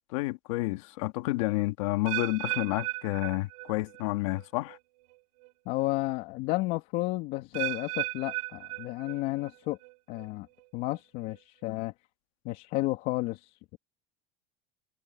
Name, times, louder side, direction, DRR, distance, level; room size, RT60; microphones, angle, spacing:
voice 1, 0.1-4.8, left 20 dB, 80° left, 2.2 m, -30 dB
sound 1, 2.1-4.1 4.3-4.8 5.4-5.5 7.5-9.5 9.8-10.3 10.9-11.0, right 22 dB, 90° right, 3.8 m, -36 dB
voice 2, 5.7-9.8 10.1-10.5 10.7-11.9 12.4-13.8, left 19 dB, 60° left, 2.7 m, -32 dB
supercardioid pair, 135°, 17 cm